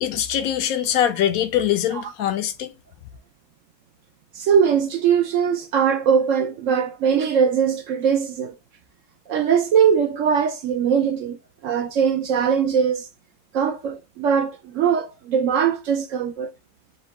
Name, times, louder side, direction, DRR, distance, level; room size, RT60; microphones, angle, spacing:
voice 1, 0.0-2.7, left 10 dB, 75° left, 1.0 m, -23 dB
voice 2, 4.3-8.5 9.3-13.1 13.5-16.5, right 7 dB, 70° right, 0.8 m, -21 dB
4.3 x 2.2 x 3.9 m
omnidirectional pair, 1.6 m